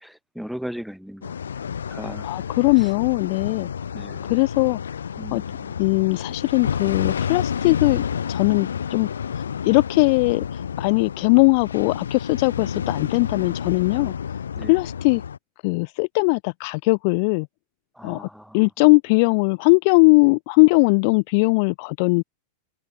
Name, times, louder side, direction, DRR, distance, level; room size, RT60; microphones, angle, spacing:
voice 1, 0.0-1.4 1.9-2.3 2.8-2.9 3.9-4.3 5.2-5.8 14.5-14.7 17.9-18.7, equal, ahead, 4.8 m, -37 dB
sound 1, 1.2-15.4, left 7 dB, 70° left, 3.1 m, -30 dB
voice 2, 2.2-3.7 4.3-4.8 5.3-5.4 5.8-8.0 8.3-9.1 9.6-14.1 14.7-15.2 15.6-17.5 18.0-18.3 18.5-22.2, left 31 dB, 45° left, 0.4 m, -19 dB
figure-of-eight pair, 90°, 0 cm